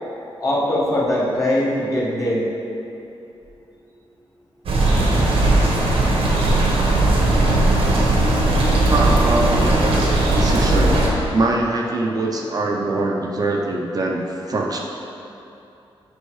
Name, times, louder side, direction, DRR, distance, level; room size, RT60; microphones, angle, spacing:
voice 1, 0.4-2.5, left 1 dB, 35° left, -6 dB, 1.5 m, -21 dB
sound 1, 4.7-11.1, right 2 dB, 80° right, 1.1 m, -17 dB
voice 2, 6.4-6.9 7.9-8.3 8.9-11.0 11.3-14.2 14.5-14.8, right 2 dB, 40° right, -1 dB, 0.6 m, -23 dB
8.2 x 5.4 x 3.2 m, 2.8 s
wide cardioid pair, 140°, 10 cm